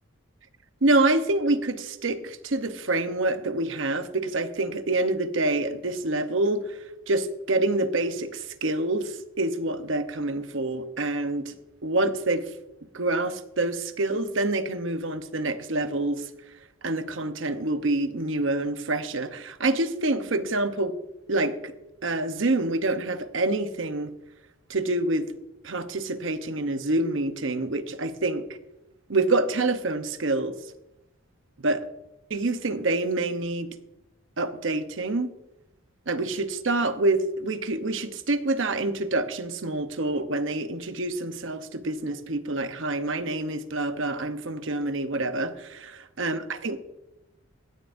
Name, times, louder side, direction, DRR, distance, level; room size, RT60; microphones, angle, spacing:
voice 1, 0.8-11.5 11.8-12.5 12.9-16.3 16.8-21.0 21.3-21.7 22.0-24.1 24.7-25.3 25.6-28.5 29.1-30.6 31.6-31.8 32.3-33.7 34.4-35.3 36.1-46.8, right 2 dB, 70° right, 9 dB, 0.9 m, -27 dB
16.0 x 11.5 x 2.6 m, 0.92 s
head